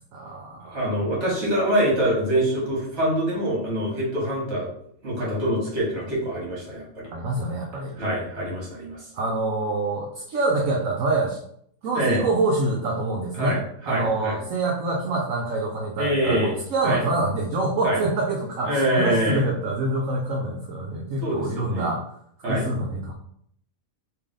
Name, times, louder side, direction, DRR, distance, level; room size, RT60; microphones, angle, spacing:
voice 1, 0.1-1.0 7.1-7.9 9.1-11.4 11.8-13.6 13.9-22.0 22.5-23.1, right 2 dB, 70° right, 0 dB, 1.0 m, -26 dB
voice 2, 0.7-4.7 5.0-7.1 8.0-9.0 11.9-12.2 13.4-13.6 13.8-14.3 16.0-16.5 16.8-17.0 17.8-18.0 18.6-19.4 21.2-21.9 22.4-22.7, equal, 50° right, -4 dB, 1.7 m, -24 dB
3.4 x 2.7 x 3.6 m, 0.67 s
omnidirectional pair, 1.5 m